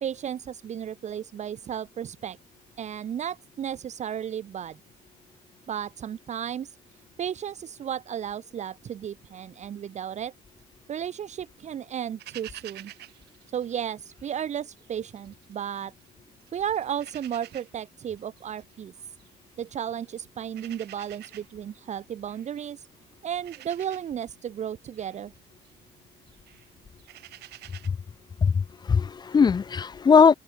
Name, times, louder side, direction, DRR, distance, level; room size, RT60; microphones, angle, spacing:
voice 1, 0.0-2.4 2.8-4.8 5.7-6.8 7.2-10.3 10.9-12.9 13.5-15.9 16.5-18.9 19.6-22.8 23.2-25.3, right 9 dB, 45° right, 1.0 m, -34 dB
sound 1, 12.2-14.5 14.8-16.1 16.4-27.9, right 15 dB, 75° right, 5.1 m, -49 dB
voice 2, 28.4-30.3, left 6 dB, 25° left, 0.6 m, -19 dB
open air
cardioid pair, 110°, 17 cm